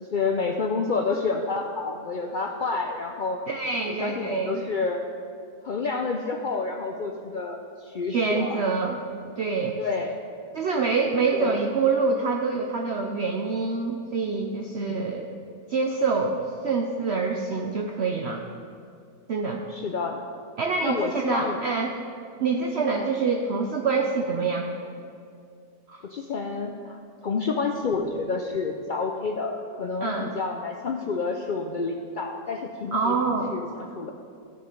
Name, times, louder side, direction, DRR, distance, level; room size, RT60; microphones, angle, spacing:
voice 1, 0.0-3.4 4.0-5.0 5.6-8.6 9.8-10.2 11.3-11.6 14.8-15.1 19.7-20.2 20.8-21.6 22.9-23.1 26.0-27.0 27.2-33.2 33.5-34.1, left 4 dB, 85° left, 3 dB, 0.4 m, -29 dB
voice 2, 3.5-4.6 8.1-9.0 9.4-9.8 10.5-15.3 15.7-16.4 16.6-18.4 19.3-19.6 20.6-22.0 22.4-24.7 25.9-26.0 30.0-30.3 32.9-33.6, right 4 dB, 60° right, 3 dB, 0.8 m, -26 dB
13.5 x 6.8 x 5.1 m, 2.5 s
omnidirectional pair, 1.6 m